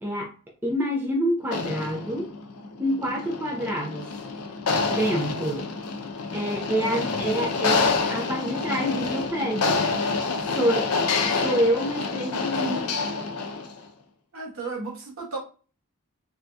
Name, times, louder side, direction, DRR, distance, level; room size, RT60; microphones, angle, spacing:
voice 1, 0.0-0.3 0.6-2.3 2.8-4.1 4.9-5.7 6.3-9.9 10.5-10.9 11.2-13.0, equal, 10° right, -1 dB, 0.5 m, -27 dB
sound 1, 1.4-13.8, left 4 dB, 85° left, 0.5 m, -27 dB
voice 2, 14.3-15.4, right 3 dB, 65° right, -2 dB, 1.1 m, -34 dB
3.3 x 2.7 x 2.3 m, 0.38 s
head